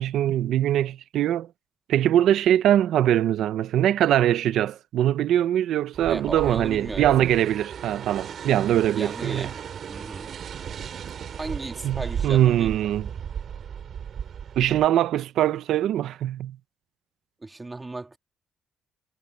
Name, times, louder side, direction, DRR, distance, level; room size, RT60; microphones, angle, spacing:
voice 1, 0.0-1.5 1.9-9.5 11.8-13.1 14.6-16.6, right 11 dB, 80° right, 0.8 m, -22 dB
sound 1, 5.9-14.9, right 8 dB, 60° right, 3.7 m, -36 dB
voice 2, 6.1-7.1 8.9-10.4 11.3-12.7 17.4-18.2, right 2 dB, 20° right, 2.2 m, -35 dB
cardioid pair, 90°, 0 cm